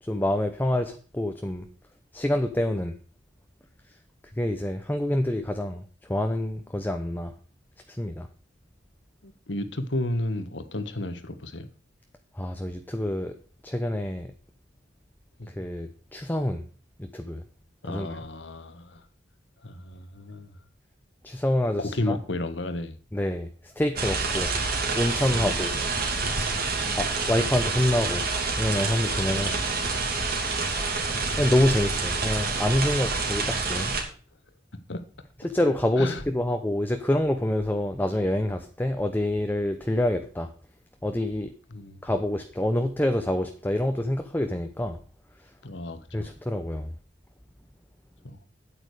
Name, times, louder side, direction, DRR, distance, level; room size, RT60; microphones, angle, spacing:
voice 1, 0.0-1.7 2.1-3.0 4.4-5.8 6.1-7.3 7.9-8.3 12.3-13.3 13.6-14.3 15.5-16.6 17.0-17.4 17.9-18.2 21.2-22.2 23.1-24.5 24.9-25.7 27.0-28.3 28.6-29.5 31.4-34.0 35.4-40.5 41.0-41.5 42.0-45.0 46.1-46.9, left 1 dB, 10° left, 6 dB, 0.8 m, -27 dB
voice 2, 9.2-11.7 15.4-15.5 17.8-19.0 19.6-20.5 21.8-23.0 25.3-25.8 26.8-27.0 29.3-30.0 34.9-35.0 36.0-36.2 41.7-42.0 45.6-46.3 48.2-48.4, left 1 dB, 70° left, 10 dB, 1.4 m, -33 dB
sound 1, 24.0-34.0, right 3 dB, 55° right, 2.8 m, -27 dB
9.0 x 8.9 x 4.8 m, 0.40 s
head